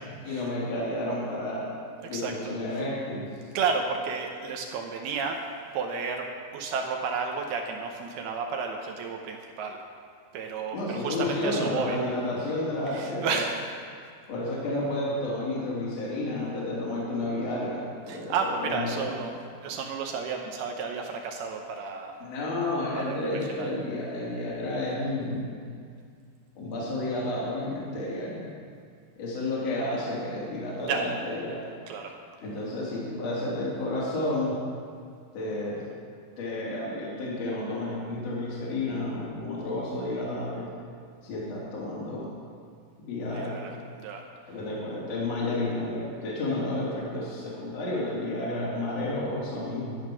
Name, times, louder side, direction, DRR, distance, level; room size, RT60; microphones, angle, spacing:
voice 1, 0.2-1.7 2.1-3.3 10.7-13.4 14.3-19.1 22.2-25.6 26.6-28.4 29.2-31.6 32.4-34.6 35.3-35.8 36.4-40.7 41.2-42.3 43.0-43.6 44.5-50.0, left 2 dB, 45° left, -6 dB, 3.3 m, -31 dB
voice 2, 2.0-2.8 3.5-5.4 5.7-9.8 10.3-12.0 12.9-13.6 18.1-19.4 19.6-22.2 23.0-23.7 30.9-31.1 31.9-32.2 43.2-44.2 45.5-45.6, right 5 dB, 75° right, 2 dB, 2.6 m, -32 dB
13.0 x 9.5 x 6.1 m, 2.2 s
omnidirectional pair, 4.9 m